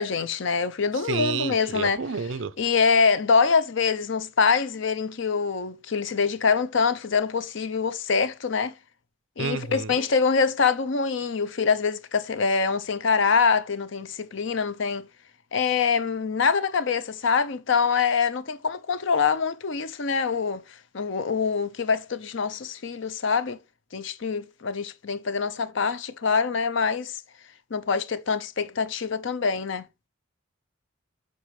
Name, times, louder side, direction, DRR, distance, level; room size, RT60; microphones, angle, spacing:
voice 1, 0.0-2.0 2.6-8.7 9.4-15.1 15.5-20.6 20.9-23.6 23.9-27.2 27.7-29.8, left 5 dB, 60° left, 0.6 m, -24 dB
voice 2, 1.0-2.5 9.4-9.9, right 5 dB, 65° right, 0.6 m, -30 dB
8.3 x 4.7 x 3.2 m
head